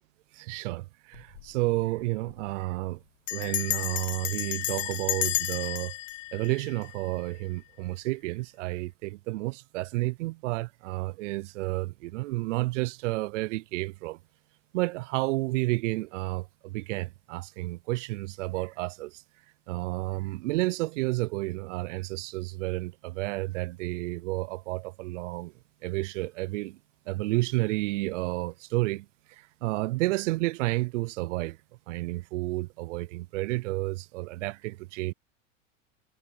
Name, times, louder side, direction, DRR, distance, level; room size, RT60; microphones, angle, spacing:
voice 1, 0.3-3.0 3.3-6.0 6.3-14.2 14.7-19.2 19.7-25.5 25.8-26.8 27.1-31.6 31.9-35.1, right 20 dB, 70° right, 0.7 m, -31 dB
Bell, 1.1-1.5 1.8-1.9 2.1-2.5 3.3-7.4, left 18 dB, 70° left, 0.8 m, -32 dB
hypercardioid pair, 90°, 38 cm